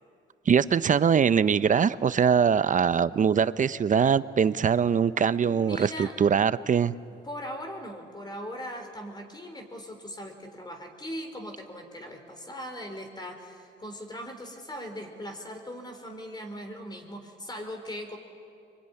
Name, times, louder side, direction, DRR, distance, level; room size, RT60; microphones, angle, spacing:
voice 1, 0.5-7.0, right 7 dB, 40° right, 15 dB, 0.7 m, -22 dB
voice 2, 5.4-6.2 7.2-18.2, equal, 20° left, 5 dB, 4.2 m, -39 dB
24.0 x 23.0 x 9.8 m, 2.5 s
cardioid pair, 90°, 20 cm